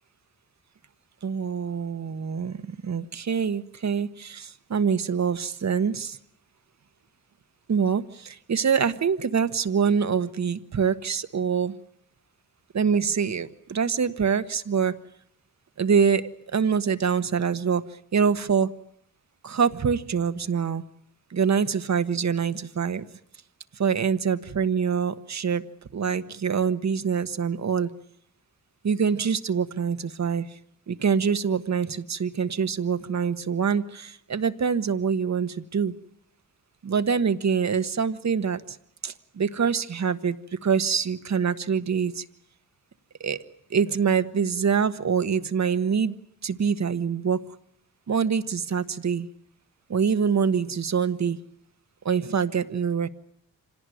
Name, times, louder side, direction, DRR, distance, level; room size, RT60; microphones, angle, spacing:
voice 1, 1.2-6.2 7.7-11.7 12.7-14.9 15.8-17.8 18.1-18.7 19.4-20.8 21.3-23.0 23.8-25.6 25.9-27.9 28.8-30.5 30.9-35.9 36.8-38.8 39.0-40.4 40.6-42.2 43.2-43.4 43.7-46.1 46.4-47.4 48.1-49.3 49.9-51.4 52.0-53.1, right 6 dB, 55° right, 11 dB, 1.4 m, -25 dB
26.0 x 18.0 x 9.3 m, 0.69 s
cardioid pair, 75°, 34 cm